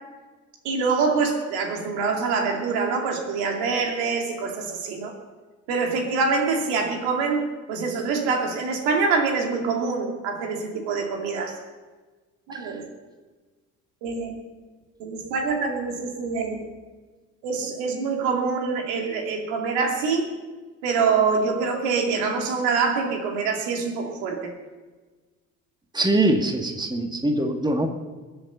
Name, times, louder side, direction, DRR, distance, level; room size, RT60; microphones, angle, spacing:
voice 1, 0.6-5.1 5.7-11.5 12.5-12.9 14.0-14.4 15.0-16.6 17.4-20.3 20.8-24.5, right 4 dB, 70° right, 2 dB, 2.6 m, -25 dB
voice 2, 25.9-27.9, right 1 dB, 10° right, 4 dB, 1.9 m, -22 dB
22.0 x 8.0 x 5.6 m, 1.3 s
hypercardioid pair, 50°, 42 cm